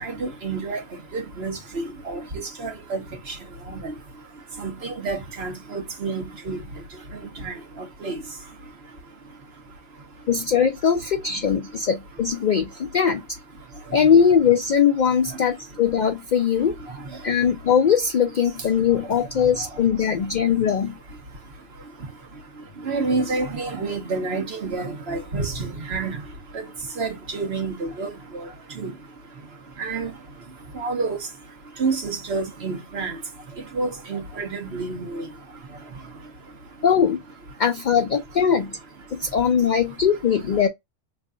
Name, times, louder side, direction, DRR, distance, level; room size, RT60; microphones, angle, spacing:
voice 1, 0.0-0.8 1.1-2.2 2.6-3.0 3.7-3.8 4.6-6.6 7.4-7.5 8.0-8.2 22.9-26.2 26.5-26.6 27.0-28.4 28.8-28.9 29.8-30.1 30.8-31.2 31.8-33.1 33.7-35.2, right 3 dB, 55° right, 1.3 m, -28 dB
voice 2, 10.3-13.2 13.9-16.8 17.2-21.0 36.8-37.2 37.6-38.8 39.2-40.7, left 7 dB, 70° left, 0.4 m, -20 dB
3.3 x 2.3 x 3.7 m
omnidirectional pair, 1.3 m